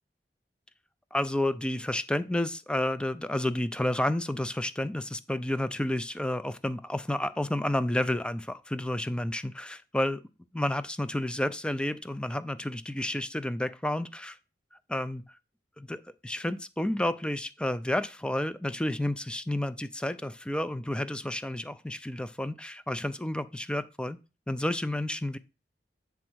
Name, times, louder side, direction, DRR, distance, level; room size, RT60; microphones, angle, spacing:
voice 1, 1.1-10.2 10.5-14.4 14.9-15.2 15.8-24.2 24.5-25.4, left 1 dB, 5° left, 0.4 m, -30 dB
8.8 x 3.5 x 6.1 m
head